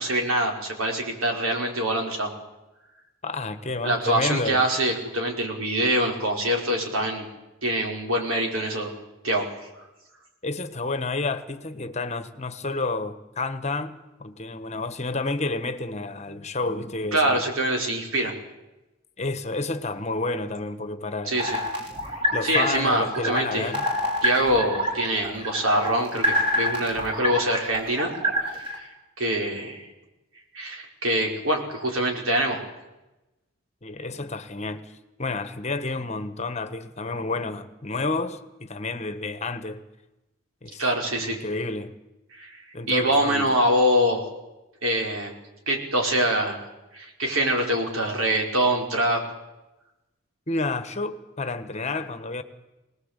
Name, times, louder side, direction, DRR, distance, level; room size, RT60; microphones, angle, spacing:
voice 1, 0.0-2.3 3.8-7.3 7.6-8.9 9.2-9.5 9.8-9.9 17.1-18.3 21.3-21.6 22.4-23.7 24.2-28.1 28.4-28.9 29.2-29.9 30.5-32.6 40.8-41.4 42.3-42.6 42.9-44.2 44.8-45.3 45.7-46.6 46.9-49.2, right 1 dB, 90° right, 5.1 m, -24 dB
voice 2, 3.2-4.6 10.4-17.4 19.2-21.4 22.3-23.9 33.8-34.9 35.2-39.8 40.6-40.8 41.2-41.9 42.7-43.6 50.5-52.4, left 3 dB, 35° left, 1.3 m, -30 dB
sound 1, 21.4-28.8, equal, 25° right, 4.6 m, -27 dB
24.0 x 19.0 x 8.3 m
head